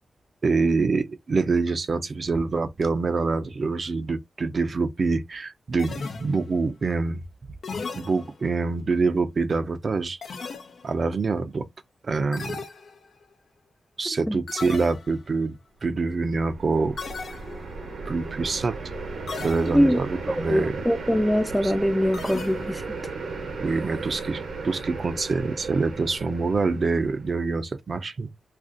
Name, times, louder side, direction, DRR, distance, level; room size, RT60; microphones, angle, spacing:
voice 1, 0.4-7.2 7.9-10.2 10.8-11.7 12.0-12.6 14.0-17.0 17.3-17.4 18.1-18.8 19.4-20.8 21.6-21.7 23.6-28.3, right 4 dB, 55° right, 0.5 m, -25 dB
sound 1, 5.8-6.7 7.6-8.6 10.2-11.1 12.3-13.3 14.5-15.3 17.0-17.9 19.3-20.1 22.1-23.0, left 4 dB, 75° left, 0.6 m, -37 dB
sound 2, 15.9-27.3, right 4 dB, 80° right, 0.8 m, -36 dB
voice 2, 20.3-23.1, equal, 5° left, 0.4 m, -23 dB
2.4 x 2.4 x 3.6 m
cardioid pair, 65°, 0 cm